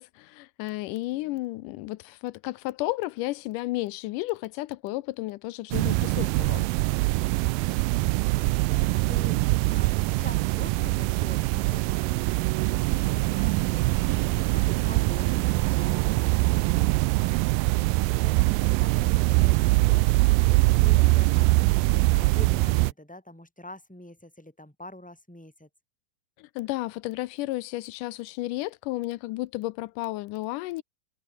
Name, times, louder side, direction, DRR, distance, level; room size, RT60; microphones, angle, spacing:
voice 1, 0.0-6.7 26.4-30.8, left 19 dB, 80° left, 2.1 m, -33 dB
voice 2, 1.1-1.4 7.2-8.0 8.7-9.4 9.7-16.3 16.8-17.4 17.8-20.0 20.5-21.5 22.2-25.7, left 1 dB, ahead, 7.3 m, -46 dB
sound 1, 5.7-22.9, right 22 dB, 90° right, 2.3 m, -23 dB
omnidirectional pair, 3.9 m